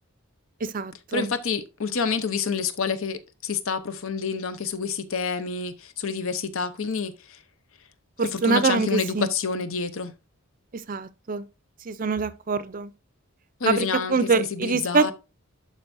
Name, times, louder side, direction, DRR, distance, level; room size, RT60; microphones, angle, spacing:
voice 1, 0.6-1.3 8.2-9.3 10.7-11.4 11.9-12.9 13.7-15.1, right 4 dB, 35° right, 0.5 m, -25 dB
voice 2, 1.1-7.4 8.2-10.1 13.6-15.1, left 5 dB, 65° left, 0.8 m, -28 dB
11.5 x 4.5 x 2.6 m
head